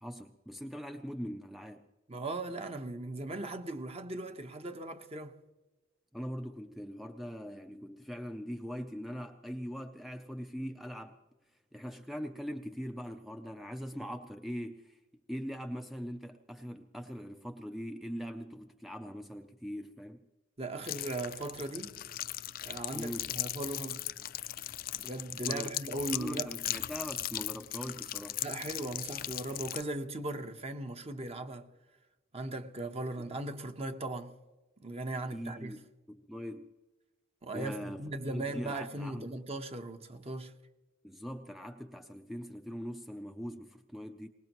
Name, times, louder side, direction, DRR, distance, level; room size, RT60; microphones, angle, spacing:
voice 1, 0.0-1.9 6.1-11.2 11.7-15.0 15.3-20.3 22.9-23.3 25.3-25.7 26.1-28.4 35.3-35.8 36.1-36.7 37.5-39.3 41.0-44.3, equal, ahead, 0.5 m, -41 dB
voice 2, 2.1-5.4 20.6-22.0 22.6-24.0 25.0-26.5 28.4-31.7 32.3-34.4 34.8-35.8 37.4-40.5, right 2 dB, 30° right, 1.0 m, -38 dB
sound 1, 20.8-29.8, left 13 dB, 50° left, 0.5 m, -38 dB
24.0 x 20.0 x 3.0 m
head